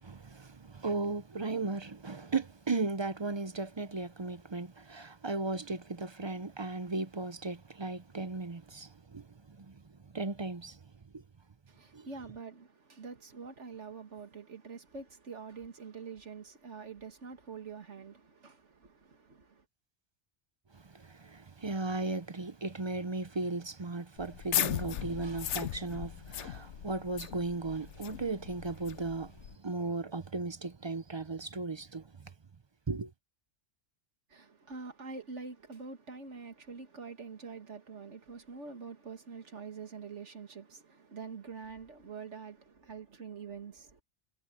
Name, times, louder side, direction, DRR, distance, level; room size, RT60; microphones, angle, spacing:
voice 1, 0.0-10.8 11.1-11.2 11.9-12.1 20.7-32.3 32.9-33.1, right 3 dB, 30° right, 0.6 m, -36 dB
voice 2, 11.7-19.6 34.3-44.0, right 5 dB, 85° right, 2.2 m, -46 dB
sound 1, 24.2-29.6, left 11 dB, 80° left, 1.0 m, -37 dB
omnidirectional pair, 1.2 m